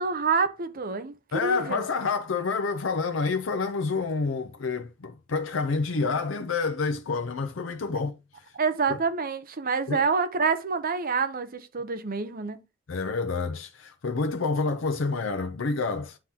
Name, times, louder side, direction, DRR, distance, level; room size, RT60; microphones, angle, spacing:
voice 1, 0.0-1.1 1.4-1.8 8.5-12.6, right 5 dB, 50° right, 0.8 m, -27 dB
voice 2, 1.3-8.2 8.9-9.0 9.9-10.0 12.9-16.2, left 4 dB, 85° left, 0.6 m, -28 dB
9.8 x 3.7 x 2.8 m
head